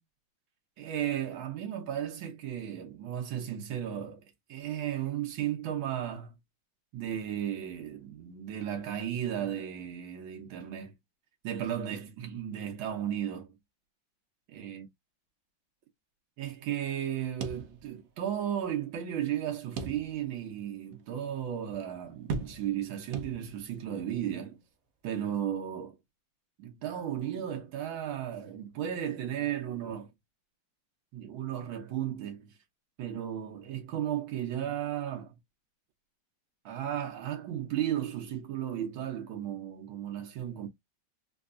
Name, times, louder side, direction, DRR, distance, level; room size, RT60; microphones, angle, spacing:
voice 1, 0.8-6.4 6.9-10.9 11.4-13.6 14.5-14.9 16.4-24.6 25.0-26.0 26.6-30.1 31.1-32.5 33.0-35.3 36.7-40.7, right 10 dB, 85° right, 1.7 m, -35 dB
sound 1, 17.4-18.3 18.6-18.7 19.8-20.4 20.9-21.0 22.3-22.9 23.1-23.8, right 4 dB, 60° right, 0.9 m, -38 dB
4.5 x 2.3 x 2.5 m
omnidirectional pair, 2.1 m